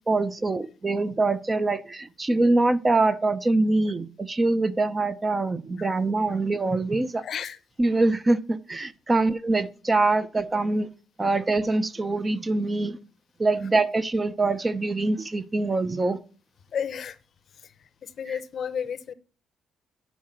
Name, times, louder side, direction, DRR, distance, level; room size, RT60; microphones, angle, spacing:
voice 1, 0.1-7.2 7.8-10.9 11.2-13.0 13.4-16.2, right 2 dB, 25° right, 0.6 m, -24 dB
voice 2, 7.2-7.6 13.6-13.7 16.7-17.2 17.6-17.7 18.0-19.1, left 7 dB, 60° left, 0.7 m, -32 dB
7.1 x 4.8 x 6.1 m
cardioid pair, 90°, 0 cm